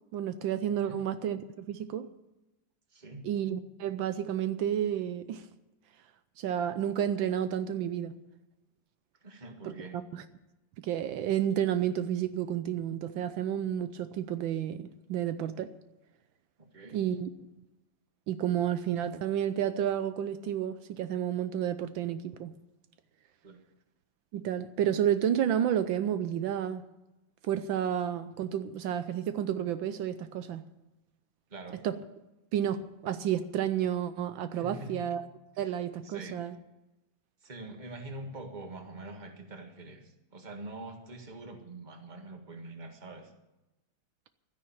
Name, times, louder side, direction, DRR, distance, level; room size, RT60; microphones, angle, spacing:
voice 1, 0.1-2.1 3.2-5.5 6.4-8.1 9.6-10.2 10.8-15.7 16.9-17.3 18.3-22.5 24.3-26.8 27.4-30.6 31.8-31.9 32.5-35.2 35.6-36.5, right 10 dB, 80° right, 1.4 m, -31 dB
voice 2, 2.9-3.2 9.2-9.9 16.6-17.0 23.4-23.6 31.5-31.8 34.5-35.1 35.6-35.7 36.0-36.4 37.4-43.3, right 2 dB, 25° right, 1.7 m, -44 dB
12.5 x 10.5 x 8.6 m
omnidirectional pair, 2.1 m